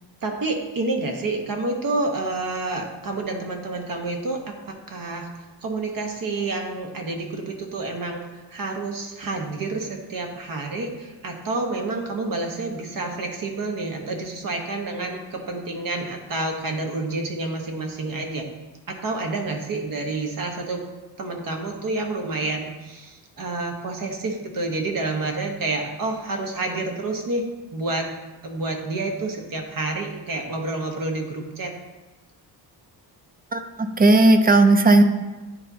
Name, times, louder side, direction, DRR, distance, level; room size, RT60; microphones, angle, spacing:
voice 1, 0.2-5.3 5.6-18.4 18.9-20.8 21.2-27.4 27.7-28.1 28.4-31.7, right 2 dB, 50° right, 3 dB, 1.1 m, -29 dB
voice 2, 33.5-35.0, right 2 dB, 25° right, 7 dB, 0.4 m, -15 dB
9.6 x 4.2 x 2.7 m, 1.1 s
cardioid pair, 110°, 41 cm